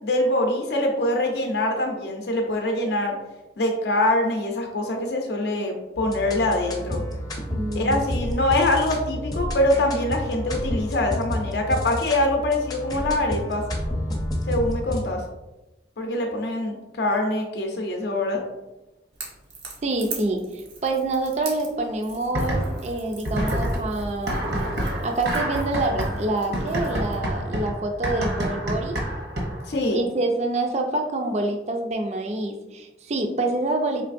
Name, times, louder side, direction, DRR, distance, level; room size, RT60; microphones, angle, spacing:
voice 1, 0.0-3.2 3.6-7.0 7.7-13.6 14.5-15.2 16.0-18.4 29.7-30.0, left 1 dB, 70° left, 2 dB, 0.5 m, -24 dB
sound 1, 6.0-15.0, left 1 dB, 20° left, 0.6 m, -30 dB
voice 2, 7.5-8.3 19.8-24.6 25.0-29.0 29.9-34.1, right 2 dB, 40° right, 4 dB, 0.4 m, -27 dB
Crackle / Crack, 19.1-27.2, right 4 dB, 85° right, 1.2 m, -42 dB
sound 2, 22.3-22.9 23.3-29.7, right 1 dB, 70° right, 0.8 m, -27 dB
4.5 x 3.2 x 2.5 m, 1.0 s
head